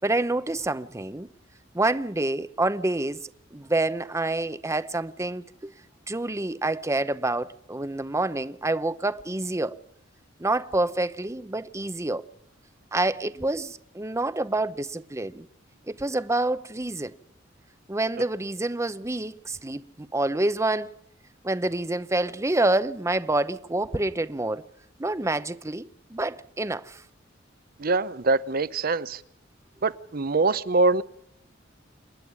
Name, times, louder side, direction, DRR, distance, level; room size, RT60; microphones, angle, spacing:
voice 1, 0.0-1.3 1.7-5.7 6.1-9.8 10.4-12.2 12.9-15.5 15.9-17.1 17.9-20.9 21.4-24.7 25.0-27.0, right 2 dB, 15° right, 0.7 m, -27 dB
voice 2, 27.8-29.2 29.8-31.0, right 3 dB, 50° right, 0.8 m, -23 dB
27.5 x 10.5 x 9.6 m
head